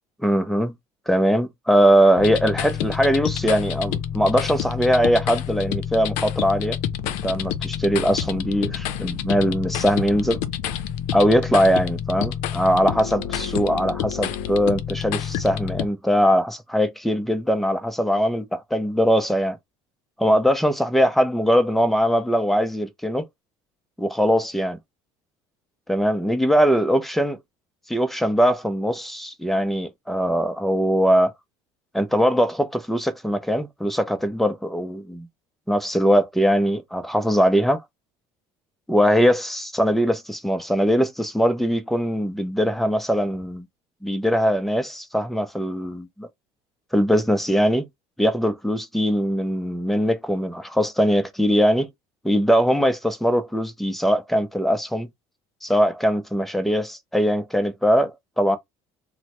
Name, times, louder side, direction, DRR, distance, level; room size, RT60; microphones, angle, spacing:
voice 1, 0.2-0.7 1.1-6.8 7.0-10.4 11.1-19.6 20.2-23.2 24.0-24.8 25.9-27.4 27.9-31.3 31.9-35.3 35.7-37.8 38.9-43.7 44.0-46.3 46.9-47.9 48.2-51.9 52.2-55.1 55.6-58.6, equal, ahead, 0.4 m, -21 dB
sound 1, 2.2-15.8, left 9 dB, 80° left, 0.5 m, -28 dB
3.1 x 2.0 x 2.9 m
cardioid pair, 140°, 12 cm